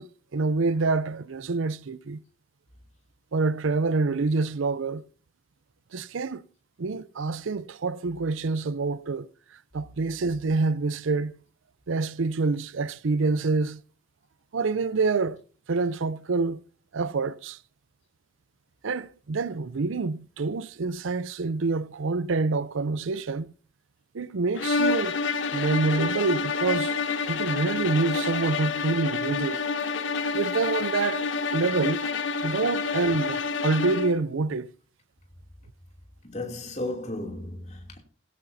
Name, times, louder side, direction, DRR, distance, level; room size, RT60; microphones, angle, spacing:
voice 1, 0.0-2.2 3.3-5.0 5.9-6.4 6.8-9.3 9.7-11.4 11.9-13.8 14.5-15.4 15.7-16.6 16.9-17.6 18.8-23.5 24.1-25.2 25.5-26.9 27.3-29.6 30.3-32.1 32.4-34.7, right 3 dB, 80° right, 0.5 m, -27 dB
sound 1, 24.6-34.2, left 4 dB, 75° left, 0.9 m, -28 dB
voice 2, 36.2-38.0, left 2 dB, 35° left, 2.8 m, -34 dB
17.5 x 16.5 x 2.7 m
head